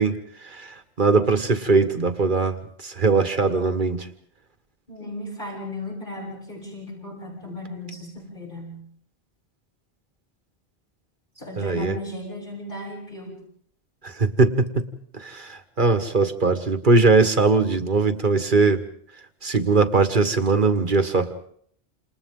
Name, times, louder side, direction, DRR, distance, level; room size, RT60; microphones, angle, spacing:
voice 1, 0.0-4.1 11.6-12.0 14.0-14.9 15.1-18.8 19.4-21.3, right 3 dB, 50° right, 8 dB, 1.8 m, -21 dB
voice 2, 4.9-8.8 11.4-13.5, left 1 dB, 50° left, -5 dB, 7.5 m, -36 dB
28.5 x 28.5 x 3.8 m, 0.63 s
omnidirectional pair, 1.1 m